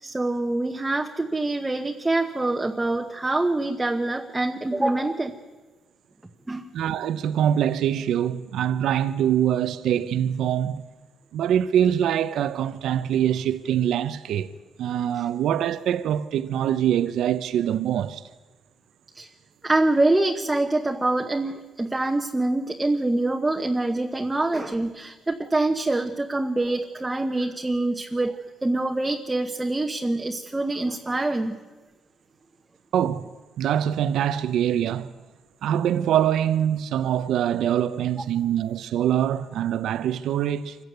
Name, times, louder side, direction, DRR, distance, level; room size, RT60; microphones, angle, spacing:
voice 1, 0.0-5.4 6.5-6.6 15.2-15.3 19.1-19.3 19.6-28.4 28.6-31.6, right 2 dB, 10° right, 1.0 m, -25 dB
voice 2, 6.7-10.8 11.3-14.5 14.8-18.3 32.9-33.3 33.6-35.1 35.6-40.8, right 10 dB, 80° right, 0.7 m, -24 dB
26.0 x 15.5 x 9.4 m
cardioid pair, 155°, 0 cm